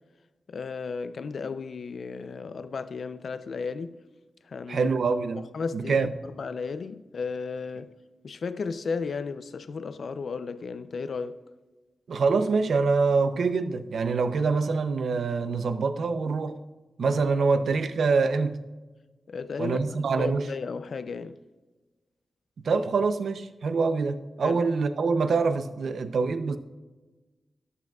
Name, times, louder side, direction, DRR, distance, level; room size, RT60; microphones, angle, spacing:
voice 1, 0.5-4.0 4.5-4.9 5.4-6.1 6.4-7.9 8.2-11.4 17.4-17.5 19.3-19.8 20.1-21.4 24.4-24.6, left 5 dB, 55° left, 0.5 m, -34 dB
voice 2, 4.7-5.5 5.7-6.1 12.1-16.6 17.0-18.6 19.6-20.5 22.6-26.6, right 4 dB, 70° right, 0.6 m, -25 dB
13.5 x 11.5 x 2.4 m
wide cardioid pair, 175°, 0 cm